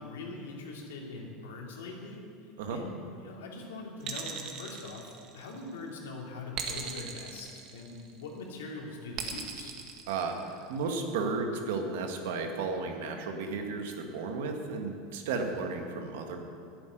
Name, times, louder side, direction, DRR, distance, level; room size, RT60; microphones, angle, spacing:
voice 1, 0.0-9.7, left 3 dB, 90° left, -1 dB, 2.6 m, -42 dB
sound 1, 4.0-5.7 6.5-8.2 9.2-10.8, right 7 dB, 50° right, 1.7 m, -39 dB
voice 2, 10.1-16.4, right 4 dB, 75° right, 4 dB, 1.8 m, -33 dB
11.5 x 8.1 x 9.4 m, 2.4 s
supercardioid pair, 120°, 0 cm